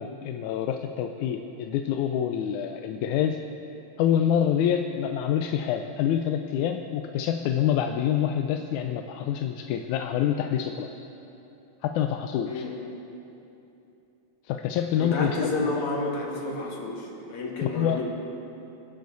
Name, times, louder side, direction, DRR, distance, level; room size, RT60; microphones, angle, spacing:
voice 1, 0.0-3.4 4.0-11.1 11.8-12.7 14.5-15.7 17.6-18.0, left 9 dB, 90° left, 5 dB, 2.1 m, -26 dB
voice 2, 15.0-18.0, left 2 dB, 70° left, -2 dB, 3.6 m, -30 dB
28.0 x 11.5 x 4.0 m, 2.9 s
omnidirectional pair, 3.3 m